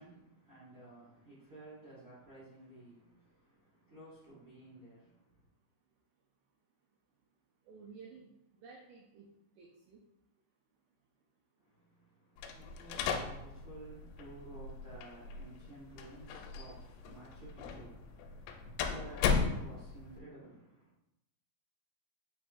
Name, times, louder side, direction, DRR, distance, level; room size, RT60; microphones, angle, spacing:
voice 1, 0.0-5.4 11.6-20.9, right 2 dB, 50° right, 1.4 m, -54 dB
voice 2, 7.6-9.3 9.6-10.0, right 5 dB, 85° right, 2.1 m, -54 dB
sound 1, 12.4-20.2, left 5 dB, 85° left, 2.5 m, -37 dB
7.3 x 3.0 x 2.4 m
omnidirectional pair, 4.9 m